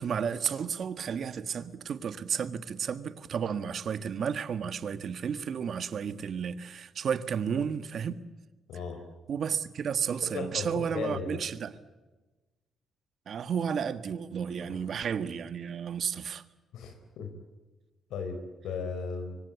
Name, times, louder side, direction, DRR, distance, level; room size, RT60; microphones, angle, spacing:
voice 1, 0.0-8.2 9.3-11.8 13.3-16.4, right 7 dB, 55° right, 1.6 m, -32 dB
voice 2, 8.7-9.0 10.3-11.5 14.7-14.8 16.7-17.3 18.1-19.4, left 5 dB, 80° left, 4.2 m, -36 dB
25.0 x 23.5 x 8.4 m
cardioid pair, 90°, 0 cm